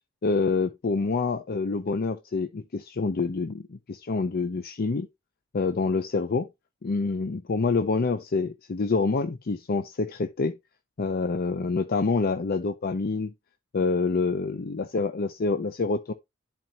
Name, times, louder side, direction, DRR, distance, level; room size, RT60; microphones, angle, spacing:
voice 1, 0.2-5.1 5.5-6.5 6.8-10.6 11.0-13.3 13.7-16.1, left 4 dB, 45° left, 0.5 m, -27 dB
10.5 x 4.3 x 2.8 m
head